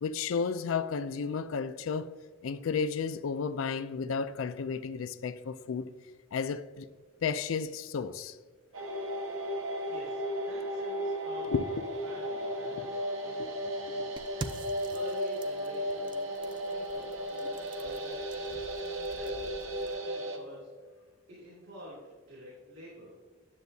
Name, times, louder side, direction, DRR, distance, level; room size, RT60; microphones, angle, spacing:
voice 1, 0.0-2.1 2.4-5.9 6.3-6.9 7.2-8.3 11.5-11.8 12.7-12.9 13.4-13.5, left 5 dB, 75° left, 0.4 m, -32 dB
sound 1, 8.7-20.4, equal, 85° right, 0.9 m, -35 dB
voice 2, 9.5-11.5 12.0-14.2 14.5-16.4 16.7-18.6 18.9-19.8 20.1-23.1, equal, 65° right, 2.6 m, -50 dB
sound 2, 14.2-20.0, right 3 dB, 25° right, 0.4 m, -47 dB
9.8 x 7.1 x 2.7 m
head